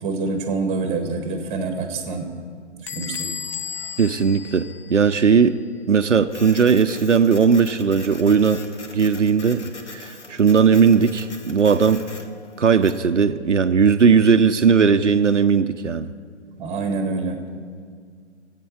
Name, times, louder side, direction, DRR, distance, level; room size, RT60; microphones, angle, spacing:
voice 1, 0.0-2.3 2.8-3.3 16.6-17.4, right 3 dB, 15° right, 5 dB, 1.6 m, -26 dB
Bell / Squeak, 2.9-5.4, left 7 dB, 30° left, 0.4 m, -34 dB
voice 2, 4.0-5.6 5.9-8.6 8.9-9.6 9.9-12.0 12.6-16.1, right 6 dB, 85° right, 9 dB, 0.6 m, -17 dB
Printer, 6.3-13.1, left 3 dB, 75° left, 1.4 m, -41 dB
22.5 x 8.3 x 4.8 m, 2.1 s
figure-of-eight pair, 125°, 35 cm